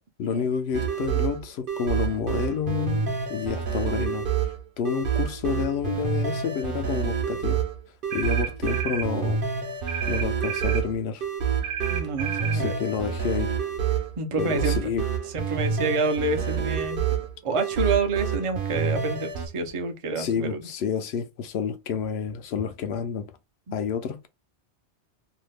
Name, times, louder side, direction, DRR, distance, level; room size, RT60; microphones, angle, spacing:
voice 1, 0.2-7.6 8.1-9.4 10.1-11.3 12.5-13.6 14.4-15.1 20.2-23.3 23.7-24.3, left 7 dB, 70° left, 0.8 m, -29 dB
sound 1, 0.7-19.5, right 7 dB, 55° right, 0.9 m, -28 dB
sound 2, 8.1-9.1 9.9-10.9 11.6-12.6, right 8 dB, 85° right, 0.9 m, -32 dB
voice 2, 11.9-12.7 14.2-14.8 15.3-17.0 17.4-20.6, right 3 dB, 35° right, 0.5 m, -28 dB
2.8 x 2.3 x 3.2 m
omnidirectional pair, 1.2 m